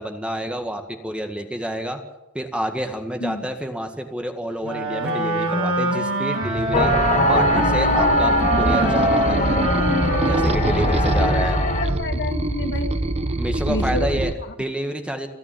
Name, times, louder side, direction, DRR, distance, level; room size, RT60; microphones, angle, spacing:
voice 1, 0.0-2.0 2.3-6.9 7.3-9.6 10.3-11.6 13.4-15.3, equal, 5° right, 5 dB, 1.8 m, -28 dB
Wind instrument woodwind instrument, 4.6-12.1, right 2 dB, 65° right, 5.1 m, -23 dB
sound 1, 6.4-14.3, right 1 dB, 30° right, 1.0 m, -25 dB
sound 2, 6.7-11.9, left 3 dB, 35° left, 1.4 m, -24 dB
voice 2, 11.2-13.0 13.7-14.5, left 2 dB, 55° left, 6 dB, 2.0 m, -29 dB
29.0 x 9.9 x 9.0 m, 1.0 s
head